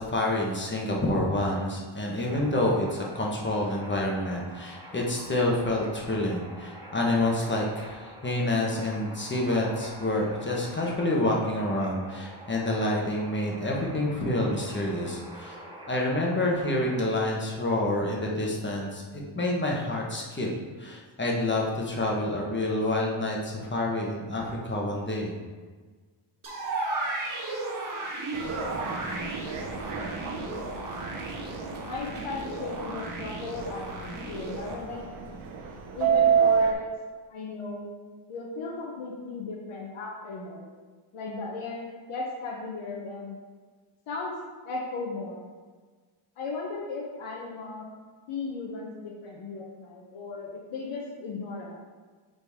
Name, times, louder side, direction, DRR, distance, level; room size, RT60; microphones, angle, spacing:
voice 1, 0.0-15.6 15.9-20.5 20.8-25.4, left 1 dB, 25° left, -2 dB, 1.2 m, -28 dB
sound 1, 2.3-17.0, right 1 dB, 10° right, 1.8 m, -46 dB
sound 2, 26.4-34.7, right 2 dB, 40° right, 1.4 m, -35 dB
Subway metro underground, 28.3-36.7, right 7 dB, 90° right, 0.9 m, -29 dB
voice 2, 30.3-31.2 31.8-35.0 35.9-36.9 37.3-37.9 38.3-40.7 41.1-43.4 44.1-44.3 44.6-45.4 46.4-47.9 48.3-51.8, left 3 dB, 85° left, -3 dB, 1.0 m, -36 dB
8.2 x 4.0 x 3.6 m, 1.4 s
cardioid pair, 115°, 48 cm